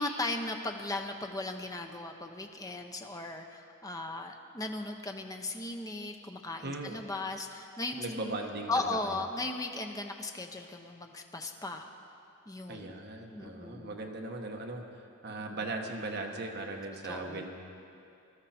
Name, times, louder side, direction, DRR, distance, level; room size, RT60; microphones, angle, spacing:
voice 1, 0.0-8.4 8.7-11.9 12.5-13.0 13.3-14.0 15.5-15.7 16.9-17.5, left 2 dB, 15° left, 4 dB, 0.8 m, -37 dB
voice 2, 6.6-7.0 8.0-8.7 9.0-9.2 12.7-14.8 15.2-17.6, right 2 dB, 45° right, 2 dB, 1.2 m, -38 dB
19.5 x 13.0 x 4.3 m, 2.6 s
head